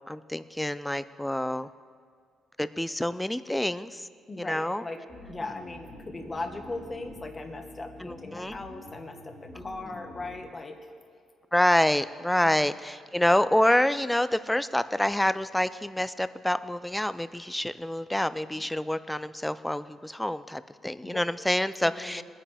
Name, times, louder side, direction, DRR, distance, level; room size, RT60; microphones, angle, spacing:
voice 1, 0.1-1.7 2.6-4.1 4.4-4.8 8.0-8.6 9.6-9.7 11.5-22.2, left 1 dB, 5° left, 14 dB, 0.4 m, -27 dB
voice 2, 4.3-5.0 5.3-10.8 12.4-12.7 18.5-18.7 21.0-21.2 21.8-22.2, left 2 dB, 25° left, 4 dB, 1.3 m, -39 dB
sound 1, 5.1-10.4, left 1 dB, 40° left, 2.1 m, -47 dB
21.0 x 9.9 x 3.5 m, 2.1 s
cardioid pair, 120°, 0 cm